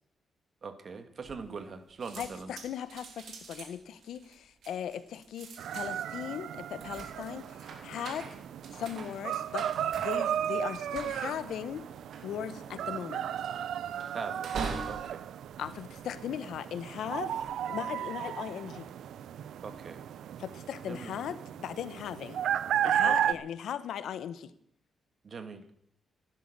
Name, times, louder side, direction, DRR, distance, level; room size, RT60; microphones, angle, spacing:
voice 1, 0.6-2.5 14.1-15.2 19.6-20.0 20.8-21.1 23.0-23.4 25.2-25.7, right 5 dB, 45° right, 9 dB, 1.7 m, -41 dB
sound 1, 1.2-1.8 2.0-16.6 17.1-17.5, right 5 dB, 70° right, 2.8 m, -44 dB
voice 2, 2.2-8.3 8.7-9.7 10.0-11.9 12.2-13.3 15.6-18.9 20.4-22.4 22.8-24.5, left 9 dB, 85° left, 13 dB, 1.0 m, -38 dB
sound 2, 5.6-23.3, right 10 dB, 85° right, 0.5 m, -34 dB
15.5 x 11.5 x 6.7 m, 0.73 s
cardioid pair, 115°, 0 cm